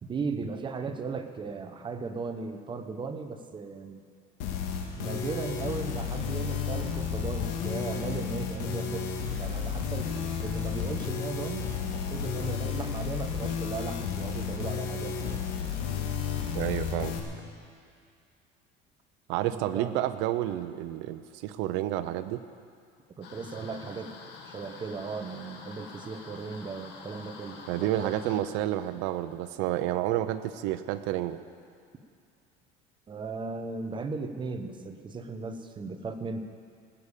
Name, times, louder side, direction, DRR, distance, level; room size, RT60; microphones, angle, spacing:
voice 1, 0.0-4.1 4.9-9.1 9.3-10.1 10.4-15.5 19.5-20.0 23.2-24.1 24.4-28.2 33.1-36.4, right 4 dB, 25° right, 7 dB, 1.0 m, -37 dB
sound 1, 4.4-17.2, left 7 dB, 85° left, 2.0 m, -32 dB
voice 2, 16.5-17.1 19.3-22.4 27.7-31.4, right 13 dB, 75° right, 10 dB, 0.7 m, -30 dB
sound 2, 23.2-28.4, left 5 dB, 60° left, 1.9 m, -47 dB
18.5 x 7.1 x 8.3 m, 2.3 s
cardioid pair, 135°, 20 cm